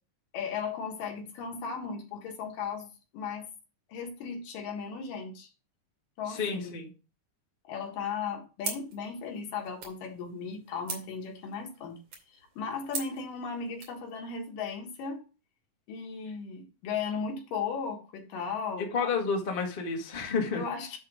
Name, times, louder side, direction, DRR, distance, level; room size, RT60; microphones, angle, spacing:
voice 1, 0.3-3.5 3.9-5.5 6.2-6.8 7.7-12.0 12.3-15.2 15.9-18.9 20.5-21.0, left 6 dB, 90° left, 3.2 m, -36 dB
voice 2, 6.3-6.9 18.9-20.6, left 5 dB, 25° left, 1.1 m, -30 dB
sound 1, 8.6-14.0, right 4 dB, 55° right, 3.8 m, -42 dB
10.5 x 3.9 x 4.9 m
omnidirectional pair, 3.7 m